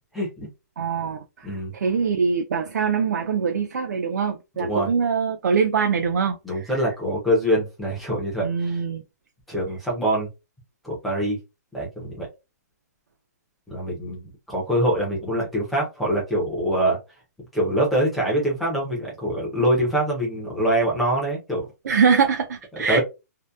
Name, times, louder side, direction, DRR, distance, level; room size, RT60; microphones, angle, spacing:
voice 1, 0.1-0.5 1.4-1.7 4.6-4.9 6.4-8.8 9.5-10.3 10.8-11.4 11.7-12.3 13.7-14.2 14.5-17.0 17.5-21.6 22.7-23.0, right 1 dB, ahead, 0.4 m, -24 dB
voice 2, 0.8-1.5 1.7-6.7 8.4-9.0 21.8-23.0, right 6 dB, 70° right, 0.4 m, -23 dB
2.6 x 2.0 x 2.2 m
hypercardioid pair, 180°, 9 cm